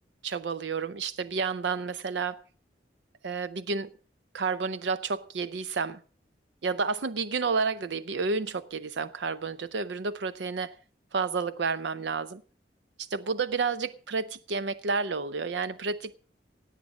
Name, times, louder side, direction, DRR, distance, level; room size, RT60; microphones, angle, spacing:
voice 1, 0.2-2.4 3.2-3.9 4.3-6.0 6.6-10.8 11.1-12.4 13.0-16.2, right 4 dB, 80° right, 0.6 m, -30 dB
17.5 x 8.3 x 6.3 m
head